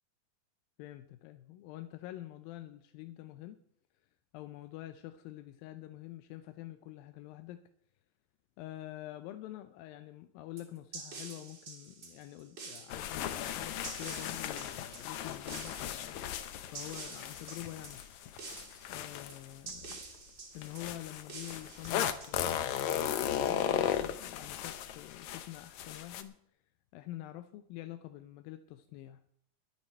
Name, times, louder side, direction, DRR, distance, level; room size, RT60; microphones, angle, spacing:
voice 1, 0.8-3.6 4.3-7.7 8.6-16.2 16.7-18.1 18.9-20.0 20.5-26.4 26.9-29.2, left 14 dB, 90° left, 2.5 m, -46 dB
sound 1, 10.6-22.8, right 4 dB, 30° right, 3.8 m, -48 dB
sound 2, 12.9-19.9 20.6-26.2, left 10 dB, 70° left, 1.8 m, -36 dB
22.0 x 8.7 x 4.5 m
omnidirectional pair, 4.0 m